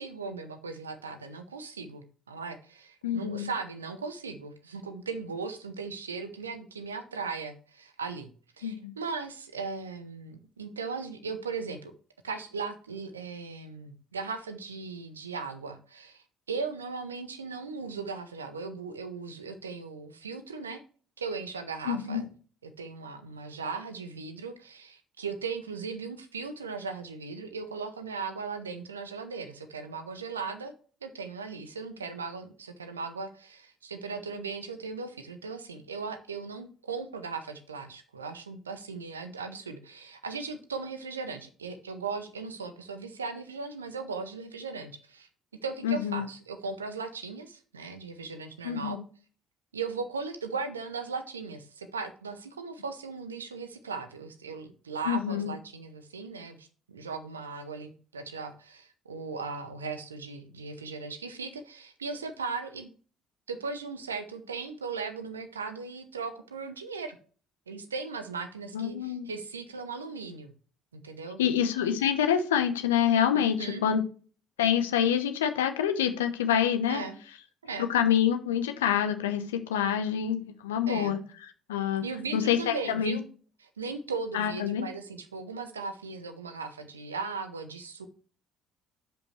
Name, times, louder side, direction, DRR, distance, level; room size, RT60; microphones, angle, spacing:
voice 1, 0.0-8.3 8.6-11.9 12.2-20.8 21.2-22.3 22.6-30.7 31.0-45.3 45.6-49.0 49.7-62.9 63.5-67.2 67.7-70.5 70.9-71.4 73.3-73.9 76.9-77.2 77.6-77.9 80.9-81.2 82.0-83.3 83.8-88.1, right 4 dB, 85° right, 9 dB, 0.8 m, -38 dB
voice 2, 3.0-3.5 8.6-8.9 21.9-22.2 45.8-46.2 48.6-49.0 55.1-55.5 68.7-69.3 71.4-74.0 74.6-77.0 77.8-81.2 81.7-82.0 82.3-83.2 84.3-84.9, left 9 dB, 80° left, 8 dB, 0.8 m, -26 dB
11.0 x 5.3 x 3.2 m, 0.39 s
figure-of-eight pair, 50°, 0 cm